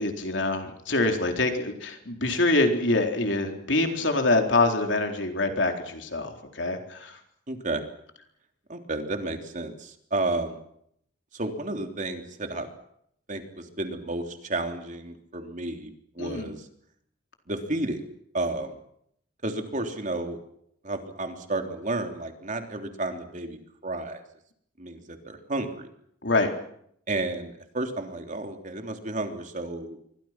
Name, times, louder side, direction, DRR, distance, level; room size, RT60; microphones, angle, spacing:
voice 1, 0.0-7.2 16.2-16.5 26.2-26.5, left 2 dB, 70° left, 4 dB, 4.1 m, -25 dB
voice 2, 7.5-7.8 8.7-10.6 11.3-12.7 13.3-16.7 17.5-18.0 18.3-18.8 19.4-20.4 20.8-24.2 24.8-25.9 27.1-30.0, right 2 dB, 40° right, 5 dB, 3.4 m, -32 dB
28.0 x 24.5 x 6.1 m, 0.71 s
head